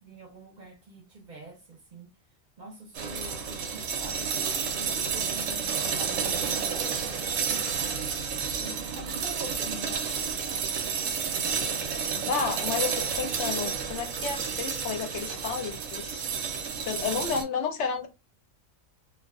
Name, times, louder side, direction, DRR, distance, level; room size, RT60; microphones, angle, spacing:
voice 1, 0.0-2.1 2.6-8.2 8.6-10.1 17.1-17.7, right 2 dB, 45° right, 0.6 m, -44 dB
sound 1, 2.9-17.4, right 6 dB, 70° right, 0.9 m, -31 dB
voice 2, 12.1-16.3 16.8-18.1, left 6 dB, 65° left, 0.8 m, -31 dB
2.3 x 2.3 x 2.3 m
omnidirectional pair, 1.4 m